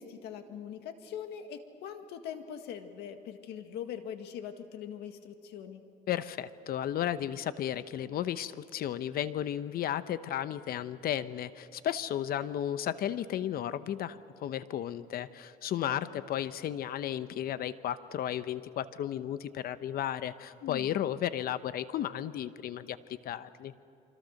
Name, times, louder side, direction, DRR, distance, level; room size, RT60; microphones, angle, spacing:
voice 1, 0.0-5.8 15.8-16.2 20.6-20.9, left 8 dB, 80° left, 7 dB, 1.8 m, -42 dB
voice 2, 6.1-23.0 23.2-23.7, left 10 dB, 65° left, 14 dB, 0.9 m, -34 dB
26.0 x 25.0 x 6.5 m, 2.7 s
cardioid pair, 110°, 17 cm